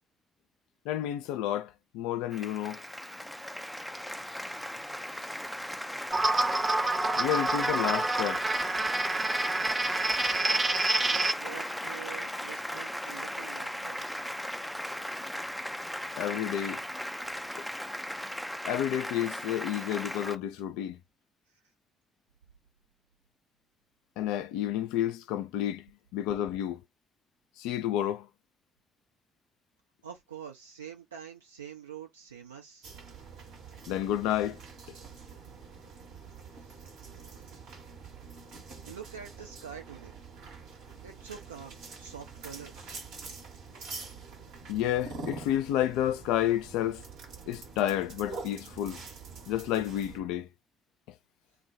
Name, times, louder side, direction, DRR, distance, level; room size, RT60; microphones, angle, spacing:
voice 1, 0.9-2.8 7.2-8.4 16.2-16.8 18.7-21.0 24.2-25.8 26.1-26.8 27.6-28.3 33.9-34.6 44.7-47.0 47.5-49.0 49.5-50.5, left 12 dB, 65° left, 0.3 m, -30 dB
Applause, 2.3-20.4, equal, ahead, 0.4 m, -37 dB
sound 1, 6.1-11.3, right 2 dB, 30° right, 0.8 m, -28 dB
voice 2, 10.4-14.0 30.0-32.9 36.6-36.8 37.1-37.6 38.9-40.2 41.0-43.0, right 7 dB, 80° right, 0.7 m, -46 dB
sound 2, 32.8-50.2, right 4 dB, 65° right, 1.1 m, -46 dB
2.2 x 2.2 x 2.7 m
figure-of-eight pair, 45°, 0 cm